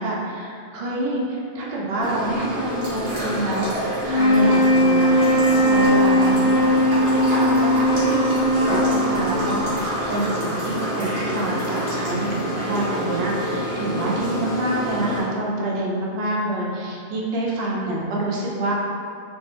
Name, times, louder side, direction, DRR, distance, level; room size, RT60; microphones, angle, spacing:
voice 1, 0.0-18.7, right 1 dB, 85° right, -4 dB, 0.5 m, -27 dB
sound 1, 2.0-15.2, equal, 60° right, 1.2 m, -27 dB
sound 2, 4.0-9.5, equal, 60° left, 0.7 m, -19 dB
3.5 x 2.1 x 2.4 m, 2.4 s
omnidirectional pair, 1.5 m